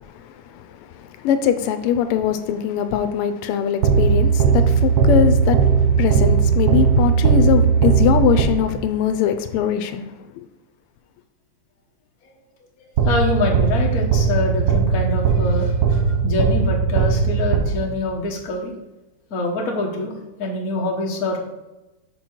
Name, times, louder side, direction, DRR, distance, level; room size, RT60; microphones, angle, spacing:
voice 1, 0.0-10.5, left 9 dB, 85° left, 1.5 m, -22 dB
sound 1, 3.8-8.9 13.0-18.2, right 5 dB, 65° right, 1.0 m, -18 dB
voice 2, 13.0-18.7 19.3-21.4, left 2 dB, 50° left, 1.3 m, -25 dB
6.2 x 4.4 x 4.3 m
omnidirectional pair, 2.4 m